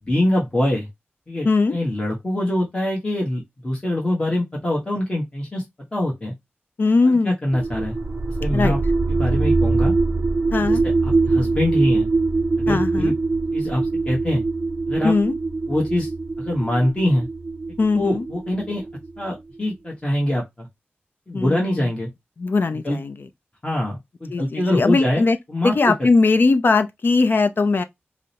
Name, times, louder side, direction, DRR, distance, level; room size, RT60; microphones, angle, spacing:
voice 1, 0.1-0.9 1.3-1.5 1.7-5.6 5.9-6.3 7.2-8.0 8.4-8.8 9.1-9.9 10.5-10.6 11.0-12.1 12.6-13.1 13.5-14.4 14.9-15.1 15.7-16.1 16.4-17.3 17.9-18.8 19.2-20.7 21.3-22.1 22.8-23.0 23.6-25.2 25.5-25.9, left 1 dB, 25° left, 1.1 m, -23 dB
voice 2, 1.4-1.7 6.8-7.4 8.5-8.8 10.5-10.8 12.7-13.1 15.0-15.3 17.8-18.3 21.3-21.9 22.4-23.3 24.3-25.4 25.6-27.8, left 3 dB, 55° left, 0.4 m, -19 dB
sound 1, 7.5-19.3, right 3 dB, 45° right, 0.4 m, -23 dB
4.9 x 2.0 x 2.8 m
wide cardioid pair, 95°, 4 cm